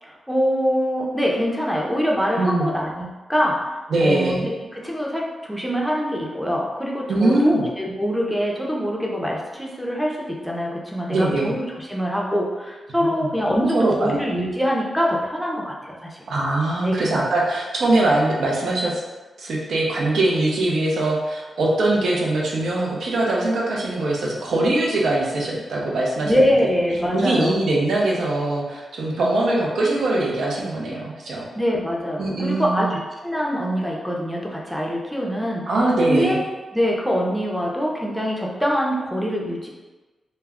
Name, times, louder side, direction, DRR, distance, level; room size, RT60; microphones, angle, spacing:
voice 1, 0.0-3.8 4.0-16.2 16.8-17.1 26.2-27.6 31.5-35.7 36.1-36.4 36.7-39.7, equal, ahead, -2 dB, 0.5 m, -24 dB
voice 2, 2.4-2.7 3.9-4.5 7.1-7.7 11.1-11.5 13.2-13.3 13.7-14.1 16.3-18.9 19.4-26.4 27.1-31.4 32.2-32.9 35.7-36.4, right 2 dB, 75° right, -3 dB, 0.5 m, -22 dB
2.2 x 2.0 x 3.4 m, 1.2 s
cardioid pair, 90°, 0 cm